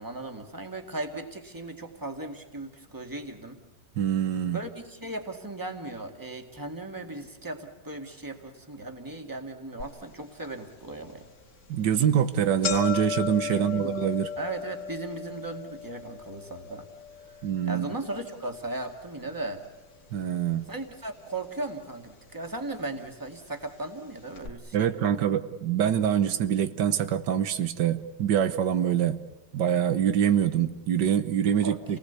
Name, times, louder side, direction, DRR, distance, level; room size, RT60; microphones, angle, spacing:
voice 1, 0.0-3.6 4.5-11.3 13.4-13.9 14.4-16.9 17.3-19.6 20.7-25.3 31.6-32.0, right 2 dB, 10° right, 4 dB, 2.0 m, -37 dB
voice 2, 4.0-4.6 11.7-14.3 17.4-17.9 20.1-20.7 24.7-29.2 29.5-32.0, right 9 dB, 90° right, 11 dB, 1.7 m, -25 dB
sound 1, 9.8-9.9 10.4-10.5 11.4-11.6 11.9-12.0 12.2-20.5 20.7-21.5 22.3-22.4 23.3-23.4 23.7-23.8 24.3-24.5, left 7 dB, 70° left, 2.6 m, -37 dB
28.5 x 19.0 x 8.2 m, 1.1 s
omnidirectional pair, 1.8 m